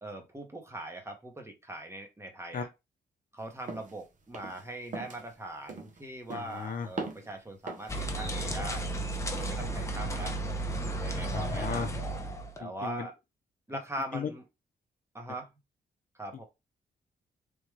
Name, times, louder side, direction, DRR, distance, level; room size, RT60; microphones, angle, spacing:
voice 1, 0.0-2.7 3.3-8.8 9.3-10.3 11.0-11.9 12.6-13.1 13.7-14.4 15.1-15.5 16.2-16.4, right 1 dB, 15° right, 1.0 m, -41 dB
sound 1, 3.7-4.0 4.3-4.6 4.9-5.3 5.7-6.0 6.3-6.6 7.0-7.3 7.7-8.0, right 3 dB, 50° right, 0.9 m, -40 dB
voice 2, 6.3-6.9 11.3-11.9 12.6-13.1 14.1-14.3, left 6 dB, 55° left, 0.7 m, -35 dB
sound 2, 7.9-12.6, right 1 dB, 20° left, 0.7 m, -33 dB
3.5 x 2.4 x 3.2 m
cardioid pair, 80°, 17 cm